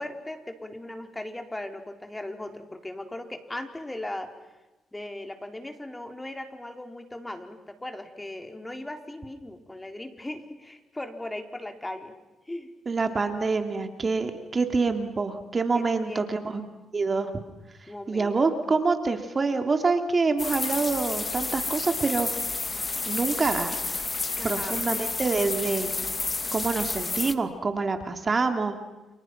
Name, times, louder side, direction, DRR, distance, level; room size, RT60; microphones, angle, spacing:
voice 1, 0.0-4.3 4.9-12.2 12.4-12.7 15.7-16.6 17.9-18.5 24.3-24.9, left 1 dB, 15° left, 5 dB, 3.9 m, -38 dB
voice 2, 12.9-16.6 16.9-17.3 18.1-22.3 23.1-23.8 24.4-25.9 26.5-28.8, right 4 dB, 40° right, 6 dB, 2.9 m, -26 dB
sound 1, 20.4-27.3, left 3 dB, 35° left, 1.8 m, -30 dB
29.5 x 28.5 x 6.1 m, 1.1 s
supercardioid pair, 55°, 0 cm